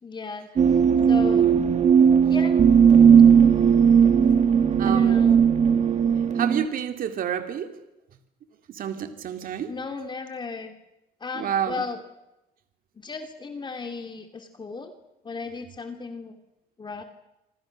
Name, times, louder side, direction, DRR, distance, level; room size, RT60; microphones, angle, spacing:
voice 1, 0.0-0.5 1.1-1.5 2.3-2.6 4.8-5.4 9.7-10.7 11.2-12.0 13.0-14.9 15.2-16.4 16.8-17.0, left 4 dB, 25° left, 5 dB, 2.6 m, -35 dB
sound 1, 0.6-6.6, right 7 dB, 40° right, 2.1 m, -17 dB
voice 2, 4.8-5.2 6.3-7.8 8.7-9.7 11.3-11.8, right 9 dB, 55° right, 7 dB, 2.5 m, -29 dB
27.0 x 26.5 x 6.4 m, 0.93 s
cardioid pair, 110°, 17 cm